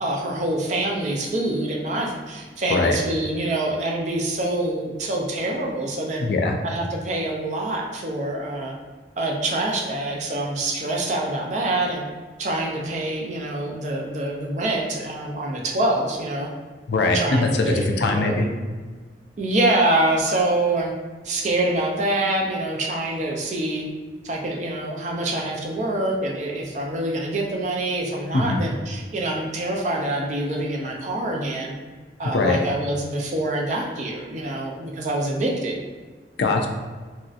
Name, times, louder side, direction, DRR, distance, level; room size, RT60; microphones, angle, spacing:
voice 1, 0.0-6.2 6.6-8.7 9.2-12.0 12.4-16.5 17.1-18.3 19.4-20.9 21.2-23.8 24.2-31.7 32.2-35.8, right 1 dB, 40° right, 0 dB, 0.4 m, -25 dB
voice 2, 6.2-6.6 16.9-18.5 28.3-28.6 32.2-32.6 36.4-36.7, left 2 dB, 65° left, 3 dB, 0.4 m, -21 dB
3.1 x 2.7 x 2.4 m, 1.4 s
head